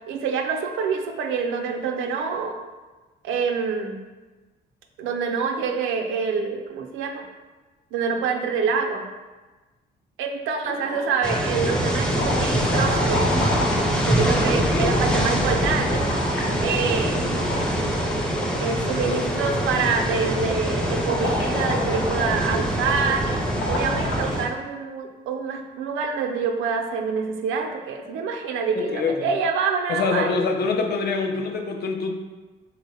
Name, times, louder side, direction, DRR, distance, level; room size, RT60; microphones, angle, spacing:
voice 1, 0.1-2.6 3.2-4.0 5.0-7.2 7.9-9.1 10.2-13.3 14.1-16.0 16.6-17.2 18.6-23.3 23.6-30.4, right 5 dB, 90° right, 5 dB, 0.4 m, -26 dB
sound 1, 10.6-11.3 11.6-24.3, left 2 dB, 80° left, 0.8 m, -32 dB
sound 2, 11.2-24.5, equal, 5° left, 0.5 m, -24 dB
voice 2, 14.5-15.2 28.7-29.3 29.9-32.1, left 4 dB, 55° left, 4 dB, 0.5 m, -25 dB
3.7 x 2.0 x 4.1 m, 1.2 s
cardioid pair, 90°, 20 cm